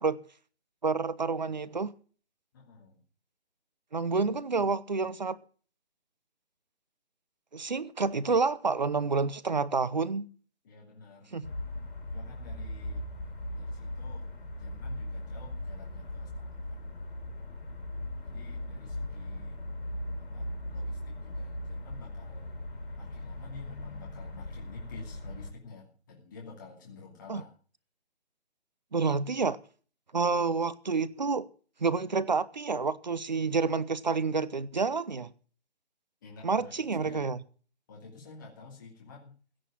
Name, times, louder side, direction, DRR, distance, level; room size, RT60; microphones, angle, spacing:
voice 1, 0.8-1.9 3.9-5.4 7.5-10.3 11.3-11.5 27.3-27.4 28.9-29.6 30.1-31.5 31.8-35.3 36.4-37.4, right 4 dB, 40° right, 0.8 m, -29 dB
voice 2, 2.5-3.0 10.6-11.3 12.1-13.1 13.5-14.3 14.6-16.8 18.2-19.6 20.2-22.6 22.9-27.5 36.2-37.3 37.9-39.4, left 4 dB, 15° left, 2.6 m, -50 dB
sound 1, 11.4-25.5, left 1 dB, 50° left, 5.9 m, -39 dB
16.5 x 6.5 x 8.9 m
hypercardioid pair, 175°, 34 cm